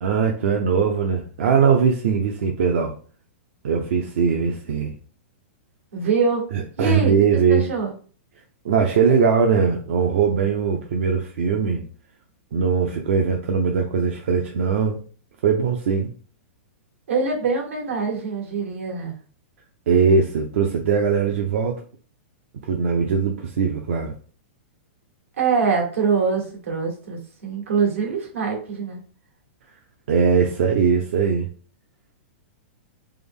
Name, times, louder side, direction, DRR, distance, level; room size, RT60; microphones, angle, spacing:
voice 1, 0.0-2.9 3.6-4.9 6.5-7.6 8.6-11.8 12.5-15.0 15.4-16.1 19.9-21.8 22.7-24.1 30.1-31.5, right 6 dB, 70° right, 2 dB, 0.5 m, -20 dB
voice 2, 5.9-6.5 6.8-7.1 7.5-7.9 17.1-19.1 25.4-29.0, right 5 dB, 90° right, 1 dB, 1.4 m, -24 dB
3.4 x 2.1 x 3.5 m, 0.41 s
hypercardioid pair, 150°, 7 cm